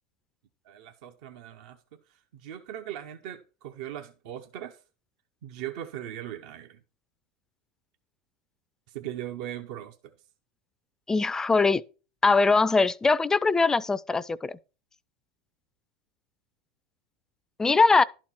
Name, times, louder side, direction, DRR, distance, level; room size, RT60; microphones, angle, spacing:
voice 1, 0.6-1.8 2.1-4.8 5.4-6.8 8.9-10.1, right 11 dB, 65° right, 0.9 m, -39 dB
voice 2, 11.1-11.8 12.2-14.6 17.6-18.0, left 4 dB, 15° left, 0.4 m, -21 dB
11.5 x 4.4 x 5.7 m
supercardioid pair, 120°, 4 cm